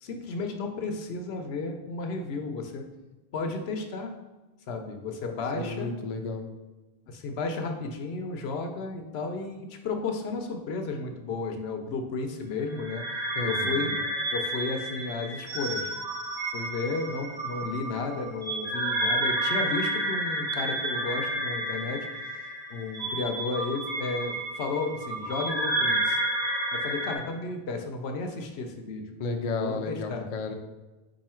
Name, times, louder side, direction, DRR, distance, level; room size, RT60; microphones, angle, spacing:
voice 1, 0.0-2.9 3.3-4.1 4.7-5.9 7.1-13.0 13.4-13.9 14.3-15.9 16.5-22.1 22.7-26.2 26.7-29.2 29.5-30.3, left 3 dB, 80° left, 5 dB, 0.9 m, -33 dB
voice 2, 5.2-6.5 13.4-13.9 29.2-30.5, left 3 dB, 50° left, 4 dB, 0.5 m, -33 dB
sound 1, 12.7-27.2, right 1 dB, 40° right, 1.2 m, -30 dB
4.7 x 2.6 x 4.3 m, 1.2 s
omnidirectional pair, 1.1 m